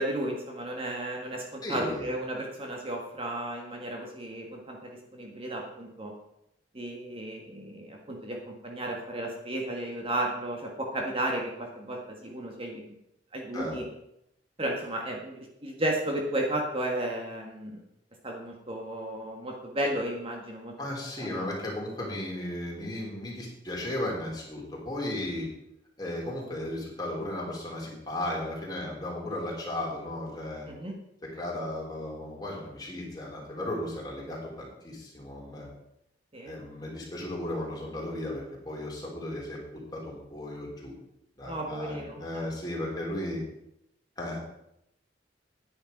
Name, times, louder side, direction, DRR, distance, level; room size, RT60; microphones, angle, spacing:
voice 1, 0.0-6.1 6.7-12.8 13.3-13.9 14.6-17.8 18.2-20.7 21.2-21.5 30.7-31.0 36.3-36.6 41.4-42.5, right 1 dB, 30° right, 1 dB, 1.5 m, -34 dB
voice 2, 1.6-2.1 13.5-13.8 20.8-25.5 26.0-30.7 31.4-35.7 36.5-39.6 39.9-40.9 41.4-43.4 44.2-44.4, left 1 dB, 20° left, -3 dB, 3.6 m, -35 dB
10.5 x 9.8 x 5.3 m, 0.80 s
head